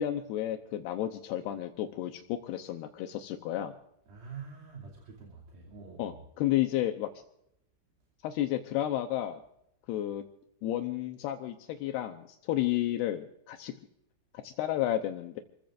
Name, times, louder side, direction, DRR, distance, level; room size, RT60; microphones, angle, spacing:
voice 1, 0.0-3.8 6.0-7.1 8.2-9.4 9.9-10.2 10.6-13.7 14.4-15.4, left 12 dB, 85° left, 5 dB, 2.4 m, -32 dB
voice 2, 4.1-6.1, right 5 dB, 50° right, -2 dB, 4.2 m, -46 dB
28.5 x 15.5 x 2.5 m, 0.77 s
omnidirectional pair, 5.7 m